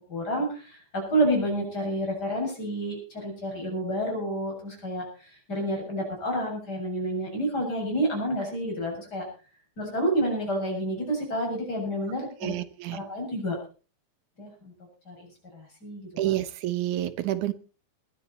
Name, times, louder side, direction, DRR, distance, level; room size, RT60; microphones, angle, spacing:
voice 1, 0.1-5.0 5.5-9.2 9.8-12.5 12.9-13.6 14.4-14.7 15.1-15.3 15.5-16.3, right 1 dB, 30° left, 0 dB, 7.7 m, -29 dB
voice 2, 12.4-13.0 16.2-17.5, right 14 dB, 90° right, 13 dB, 2.5 m, -28 dB
20.5 x 13.0 x 4.3 m, 0.36 s
omnidirectional pair, 3.4 m